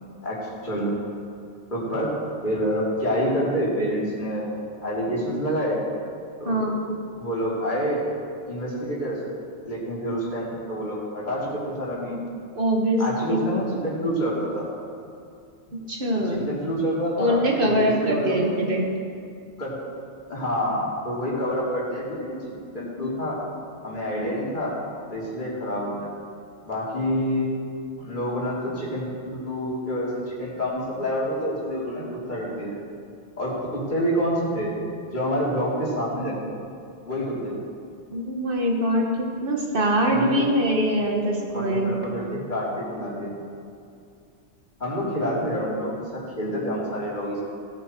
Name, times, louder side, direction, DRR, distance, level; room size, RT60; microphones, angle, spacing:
voice 1, 0.2-0.9 1.7-2.1 2.4-4.4 4.8-5.8 6.4-6.8 7.1-8.0 8.5-9.2 9.6-12.2 13.0-14.7 16.2-18.6 19.6-19.8 20.3-22.4 22.7-23.4 23.8-24.7 25.1-26.1 26.6-27.5 28.0-32.8 33.4-34.7 35.1-36.3 37.0-37.5 40.1-40.5 41.5-43.3 44.8-47.4, equal, 45° left, -6 dB, 3.3 m, -27 dB
voice 2, 6.4-6.8 12.5-13.0 13.3-13.5 15.7-16.4 17.2-18.9 38.1-39.1 39.4-41.9, right 1 dB, 50° right, 0 dB, 1.8 m, -23 dB
17.5 x 8.8 x 4.6 m, 2.3 s
omnidirectional pair, 1.2 m